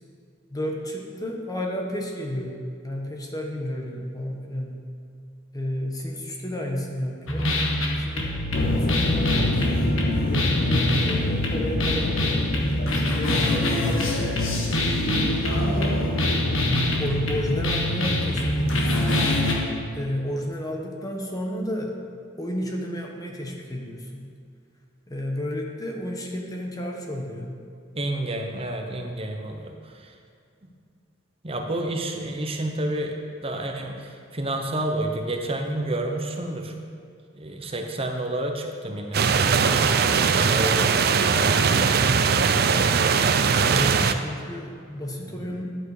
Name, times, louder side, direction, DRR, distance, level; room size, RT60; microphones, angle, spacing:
voice 1, 0.5-4.8 5.5-7.5 7.9-9.7 10.3-12.5 13.0-14.7 15.2-16.0 17.0-19.2 19.9-22.0 22.4-24.3 25.1-27.6 43.4-45.7, left 1 dB, 15° left, 1 dB, 1.1 m, -32 dB
sound 1, 7.3-19.5, left 1 dB, 70° left, 1.6 m, -25 dB
sound 2, 8.5-19.7, left 2 dB, 40° left, 0.6 m, -29 dB
voice 2, 27.9-30.1 30.6-30.7 31.4-36.7 37.3-41.9 45.2-45.4, right 1 dB, 25° right, 3 dB, 0.9 m, -30 dB
sound 3, 39.1-44.1, right 5 dB, 50° right, 0.5 m, -20 dB
11.0 x 9.1 x 4.9 m, 2.3 s
head